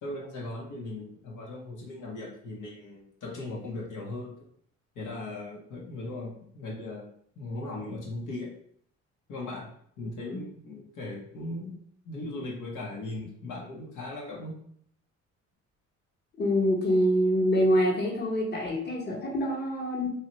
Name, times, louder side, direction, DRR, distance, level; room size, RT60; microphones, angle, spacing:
voice 1, 0.0-4.3 4.9-7.1 7.4-8.5 9.3-9.7 10.0-11.8 12.0-14.6, left 2 dB, 85° left, -3 dB, 0.9 m, -38 dB
voice 2, 16.4-20.1, equal, 35° left, -2 dB, 1.0 m, -25 dB
2.9 x 2.3 x 3.0 m, 0.63 s
cardioid pair, 90°, 30 cm